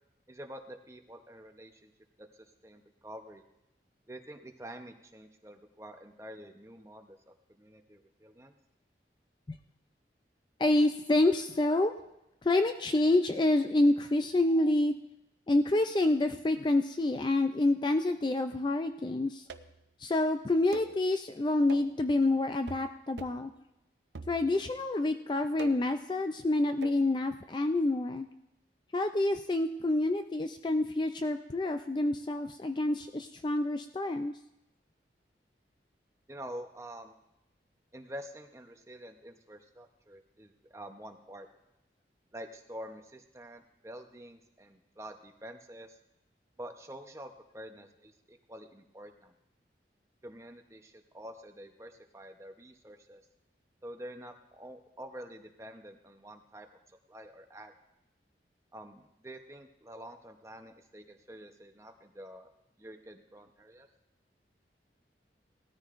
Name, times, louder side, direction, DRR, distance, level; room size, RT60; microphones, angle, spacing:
voice 1, 0.3-1.9 2.2-2.3 2.6-3.4 4.1-8.5 36.3-37.2 37.9-41.5 42.3-46.0 46.6-49.3 50.2-53.2 53.8-56.7 57.1-57.7 58.7-62.5 62.8-63.9, equal, 15° right, 5 dB, 0.8 m, -47 dB
voice 2, 10.6-11.9 12.4-14.9 15.5-19.4 20.0-23.5 24.3-28.3 28.9-34.3, left 2 dB, 25° left, 7 dB, 0.4 m, -28 dB
sound 1, 19.5-19.9 20.7-21.0 21.7-22.0 22.7-22.9 23.2-23.5 24.1-24.7 25.6-26.0 26.8-27.0, right 3 dB, 80° right, 0.6 m, -45 dB
18.5 x 13.5 x 2.5 m, 0.89 s
head